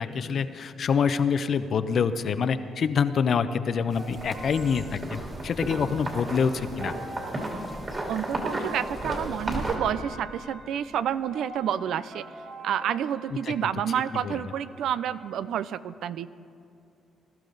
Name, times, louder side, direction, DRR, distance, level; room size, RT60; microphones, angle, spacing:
voice 1, 0.0-6.9 13.4-13.7 14.2-14.4, left 6 dB, 55° left, 12 dB, 0.7 m, -26 dB
sound 1, 3.9-9.8, right 1 dB, 30° right, 2.8 m, -34 dB
sound 2, 4.0-15.3, right 2 dB, 55° right, 3.9 m, -45 dB
voice 2, 8.1-12.2 12.6-16.3, right 9 dB, 75° right, 15 dB, 0.4 m, -29 dB
20.0 x 12.5 x 4.0 m, 2.7 s
cardioid pair, 90°, 0 cm